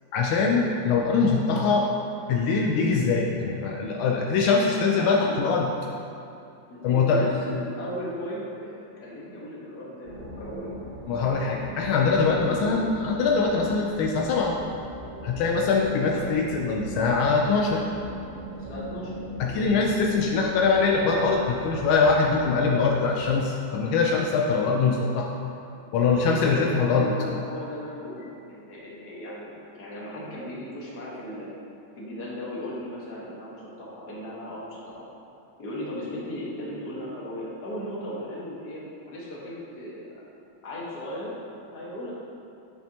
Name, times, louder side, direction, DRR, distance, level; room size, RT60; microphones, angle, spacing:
voice 1, 0.1-1.9 2.3-5.7 6.8-7.3 11.1-14.5 15.2-17.8 19.4-25.3 25.9-27.1, left 4 dB, 85° left, -1 dB, 1.5 m, -23 dB
voice 2, 5.0-5.4 6.7-10.7 11.1-12.9 15.9-16.2 18.6-19.1 19.4-19.6 25.7-25.8 26.1-29.5 29.8-31.5 32.0-35.0 35.6-40.0 40.6-41.3 41.7-42.2, left 1 dB, 50° left, -6 dB, 2.1 m, -37 dB
sound 1, 10.0-23.3, right 1 dB, 35° right, 2.2 m, -39 dB
9.7 x 7.1 x 2.9 m, 2.7 s
omnidirectional pair, 2.2 m